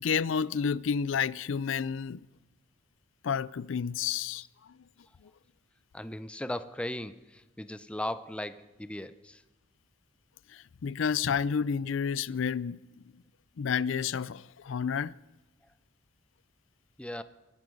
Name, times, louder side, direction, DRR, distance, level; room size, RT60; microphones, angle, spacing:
voice 1, 0.0-2.3 3.2-4.8 10.5-12.8 13.6-15.1, left 6 dB, 75° left, 0.4 m, -30 dB
voice 2, 5.9-9.4 17.0-17.2, left 1 dB, 5° left, 0.5 m, -37 dB
24.0 x 11.0 x 5.3 m
head